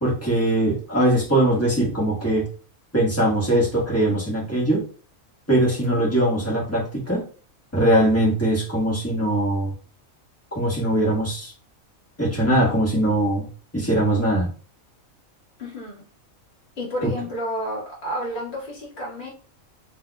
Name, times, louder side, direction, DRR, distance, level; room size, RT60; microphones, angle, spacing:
voice 1, 0.0-2.5 2.9-4.9 5.5-7.2 7.7-9.7 10.5-11.5 12.2-13.5 13.7-14.5 17.0-17.1, right 1 dB, 10° left, -6 dB, 1.3 m, -21 dB
voice 2, 15.6-15.9 16.8-19.3, equal, 50° left, -4 dB, 1.7 m, -30 dB
4.3 x 2.7 x 2.3 m, 0.39 s
omnidirectional pair, 1.4 m